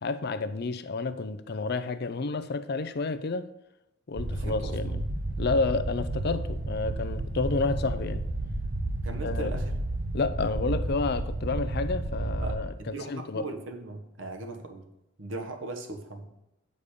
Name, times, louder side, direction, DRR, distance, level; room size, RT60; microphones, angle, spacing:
voice 1, 0.0-3.5 4.1-5.0 5.4-8.2 9.2-9.5 10.1-13.4, left 3 dB, 55° left, 0.6 m, -30 dB
Low Rumble, 4.1-12.6, right 2 dB, 40° right, 0.8 m, -31 dB
voice 2, 4.3-4.9 9.0-9.7 12.4-14.8 15.2-16.3, right 2 dB, 70° right, 1.4 m, -39 dB
8.5 x 5.4 x 6.7 m
head